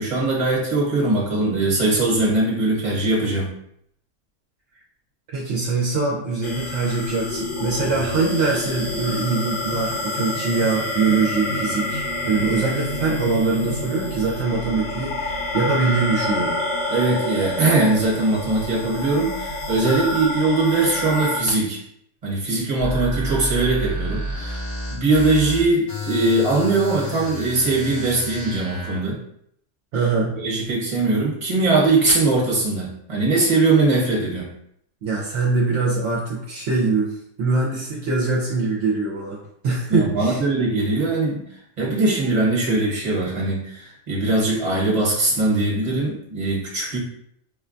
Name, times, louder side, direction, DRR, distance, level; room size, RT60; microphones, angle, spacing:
voice 1, 0.0-3.5 16.9-21.8 22.2-24.6 24.9-29.2 30.4-34.5 39.9-41.4 41.8-47.0, right 2 dB, 30° right, -4 dB, 1.1 m, -21 dB
voice 2, 5.3-16.6 29.9-30.4 35.0-40.4, right 4 dB, 70° right, -3 dB, 0.9 m, -23 dB
sound 1, 6.4-21.4, left 2 dB, 70° left, 0.9 m, -28 dB
sound 2, 22.8-29.0, equal, 25° left, 0.6 m, -30 dB
4.7 x 2.2 x 2.5 m, 0.70 s
omnidirectional pair, 1.3 m